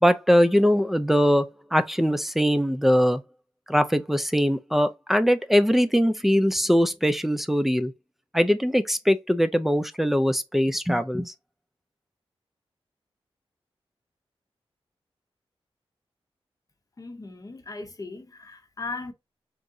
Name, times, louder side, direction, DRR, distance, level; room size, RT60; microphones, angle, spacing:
voice 1, 0.0-3.2 3.7-7.9 8.3-11.3, equal, ahead, 0.3 m, -21 dB
voice 2, 17.0-19.1, left 3 dB, 35° left, 0.7 m, -37 dB
3.5 x 2.0 x 2.6 m
wide cardioid pair, 80°, 10 cm